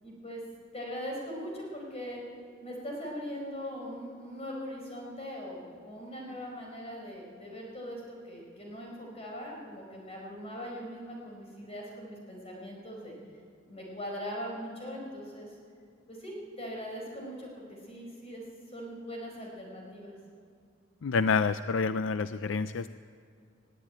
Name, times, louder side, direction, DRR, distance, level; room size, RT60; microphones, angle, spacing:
voice 1, 0.0-0.4 0.7-2.2 2.6-13.1 13.6-15.5 16.1-18.4 18.7-20.2, equal, 30° left, -1 dB, 4.9 m, -40 dB
voice 2, 21.0-23.0, left 5 dB, 70° left, 13 dB, 0.4 m, -28 dB
21.0 x 15.0 x 9.0 m, 2.3 s
head